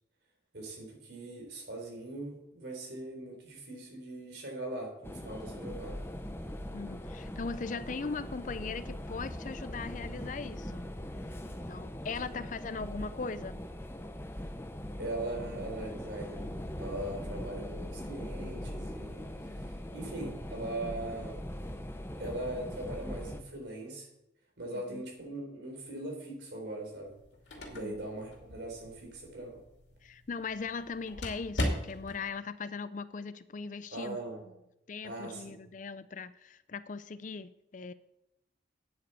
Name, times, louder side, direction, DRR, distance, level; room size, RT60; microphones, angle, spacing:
voice 1, 0.5-6.0 15.0-16.5 16.8-21.4 22.2-24.1 24.6-27.1 27.7-29.6 33.9-34.4 35.0-35.5, right 2 dB, 65° right, 1 dB, 4.1 m, -40 dB
sound 1, 5.0-23.4, left 1 dB, 15° left, 0.8 m, -41 dB
voice 2, 6.7-10.9 11.7-13.6 24.7-25.0 27.7-28.1 30.0-34.2 34.9-37.9, left 4 dB, 45° left, 15 dB, 0.5 m, -39 dB
sound 2, 27.1-32.3, left 1 dB, 75° left, 2.5 m, -39 dB
9.5 x 8.3 x 6.8 m, 0.86 s
head